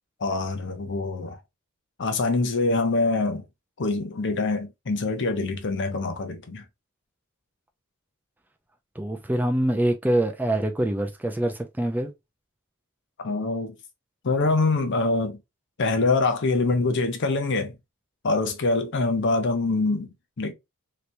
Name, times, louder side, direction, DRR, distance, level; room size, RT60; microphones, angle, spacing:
voice 1, 0.2-1.4 2.0-3.4 3.8-6.6 13.2-13.7 14.2-15.4 15.8-17.7 18.2-20.5, left 3 dB, 55° left, 0.7 m, -24 dB
voice 2, 9.0-12.1, right 1 dB, 10° right, 0.4 m, -25 dB
3.3 x 2.9 x 2.6 m
head